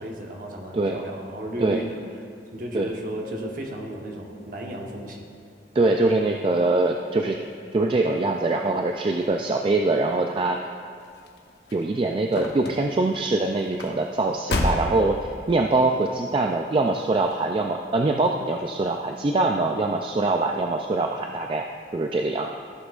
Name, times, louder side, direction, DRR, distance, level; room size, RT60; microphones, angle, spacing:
voice 1, 0.0-2.0 2.5-5.3, right 1 dB, 50° right, 0 dB, 1.1 m, -34 dB
voice 2, 5.7-7.4 7.7-10.7 11.7-21.7 21.9-22.6, right 2 dB, 30° right, 3 dB, 0.3 m, -23 dB
sound 1, 11.0-15.8 16.5-16.9 17.2-17.3, left 1 dB, 65° left, 0.9 m, -31 dB
15.0 x 7.2 x 2.4 m, 2.3 s
head